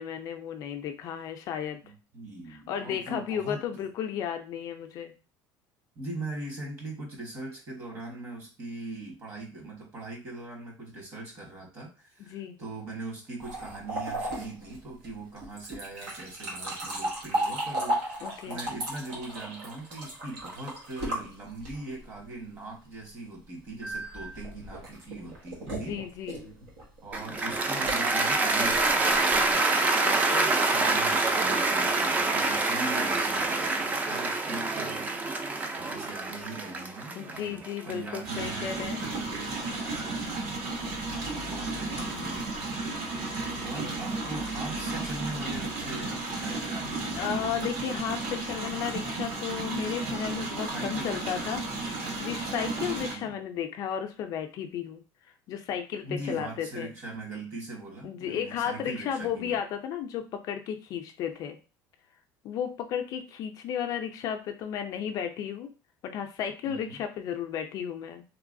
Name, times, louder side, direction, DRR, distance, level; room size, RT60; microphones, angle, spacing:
voice 1, 0.0-1.8 2.5-5.1 12.2-12.6 18.2-18.6 25.7-26.4 30.0-30.5 37.1-39.0 43.8-43.9 47.1-51.6 51.9-55.0 55.5-56.9 58.0-61.6 62.4-65.7 66.0-68.2, left 8 dB, 45° left, 5 dB, 0.4 m, -34 dB
voice 2, 1.8-3.6 5.9-26.0 27.0-29.6 30.7-35.3 35.7-40.1 41.2-42.5 43.6-47.6 50.7-51.5 53.0-53.3 56.0-59.6 66.6-67.0, right 2 dB, 35° right, 0 dB, 1.3 m, -41 dB
sound 1, 13.4-22.0 23.8-29.5, right 1 dB, 90° right, 1.4 m, -35 dB
Cheering / Applause, 27.1-39.4, right 3 dB, 20° right, 0.4 m, -26 dB
sound 2, 38.2-53.1, right 3 dB, 60° right, 1.6 m, -33 dB
3.2 x 3.0 x 2.5 m, 0.33 s
cardioid pair, 160°, 8 cm